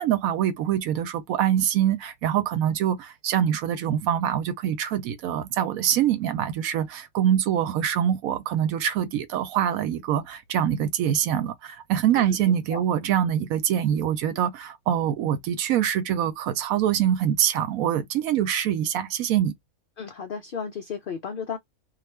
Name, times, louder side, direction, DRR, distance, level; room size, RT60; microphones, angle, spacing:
voice 1, 0.0-19.5, right 10 dB, 75° right, 1.0 m, -24 dB
voice 2, 20.0-21.6, left 6 dB, 80° left, 0.4 m, -34 dB
2.4 x 2.3 x 3.1 m
omnidirectional pair, 1.5 m